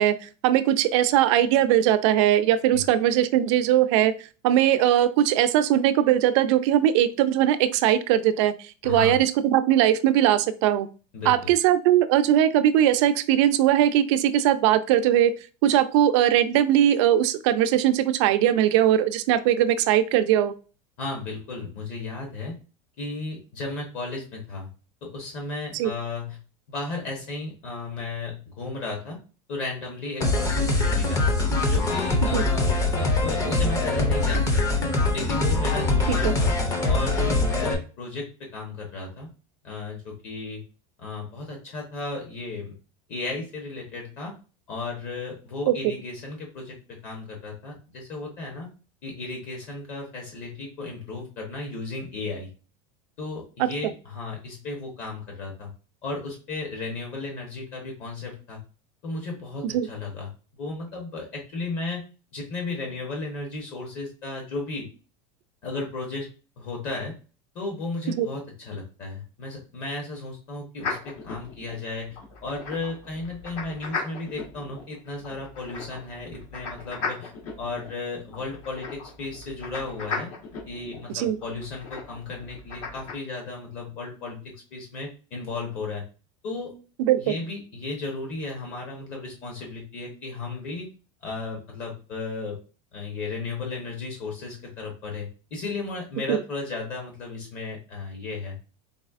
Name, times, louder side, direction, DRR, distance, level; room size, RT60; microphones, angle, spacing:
voice 1, 0.0-4.1 4.4-10.9 11.3-20.5 25.7-25.9 32.3-32.4 36.2-36.3 45.7-45.8 53.6-53.7 59.6-59.9 68.2-68.3 81.1-81.4 87.0-87.3 96.3-96.4, right 11 dB, 55° right, 11 dB, 0.4 m, -20 dB
voice 2, 8.8-9.2 11.1-11.5 21.0-22.5 23.0-24.7 25.0-26.4 26.7-29.2 29.5-31.2 31.7-34.8 35.1-36.5 36.9-39.3 39.6-40.6 41.0-42.7 43.1-44.3 44.7-48.7 49.0-52.5 53.2-55.7 56.0-58.6 59.0-60.3 60.6-62.0 62.3-64.9 65.6-66.3 66.6-67.1 67.5-77.3 77.6-80.3 80.7-86.0 86.4-86.7 87.2-90.9 91.2-92.6 92.9-98.6, left 3 dB, 45° left, 0 dB, 1.0 m, -34 dB
sound 1, 30.2-37.7, left 2 dB, 20° left, 0.5 m, -23 dB
sound 2, 70.8-83.1, left 4 dB, 65° left, 1.3 m, -37 dB
4.1 x 3.2 x 2.4 m, 0.35 s
supercardioid pair, 165°, 18 cm